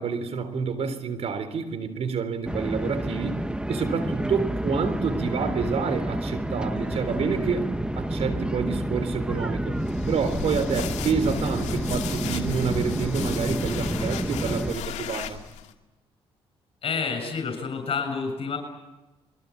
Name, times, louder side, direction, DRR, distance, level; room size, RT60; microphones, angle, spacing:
voice 1, 0.0-3.4 3.7-9.8 10.1-15.4, right 6 dB, 65° right, 12 dB, 3.9 m, -28 dB
sound 1, 2.5-14.8, right 1 dB, 10° right, 1.3 m, -29 dB
sound 2, 9.8-15.7, left 11 dB, 80° left, 2.3 m, -36 dB
voice 2, 16.8-18.6, left 5 dB, 55° left, 6 dB, 7.1 m, -29 dB
25.5 x 23.0 x 8.6 m, 1.0 s
supercardioid pair, 65°, 12 cm